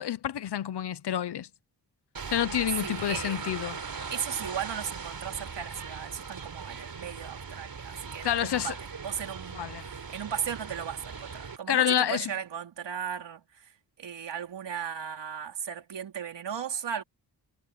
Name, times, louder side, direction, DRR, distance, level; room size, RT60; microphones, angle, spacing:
voice 1, 0.0-1.5 2.3-3.8 8.2-8.7 9.6-9.9 11.7-12.3, left 10 dB, 75° left, 1.0 m, -28 dB
sound 1, 2.1-11.6, right 5 dB, 55° right, 4.9 m, -39 dB
voice 2, 2.8-3.6 4.1-13.7 14.0-17.0, right 8 dB, 85° right, 4.4 m, -36 dB
cardioid pair, 70°, 41 cm